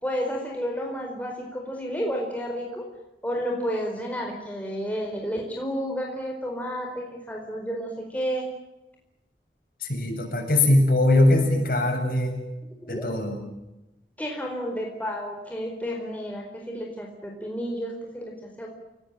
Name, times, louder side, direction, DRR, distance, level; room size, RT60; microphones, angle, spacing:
voice 1, 0.0-2.9 3.2-8.5 12.8-13.1 14.2-18.7, equal, 10° left, 0 dB, 4.5 m, -31 dB
voice 2, 9.8-12.4 12.9-13.4, left 1 dB, 55° left, 3 dB, 7.7 m, -21 dB
29.0 x 19.0 x 9.2 m, 0.97 s
head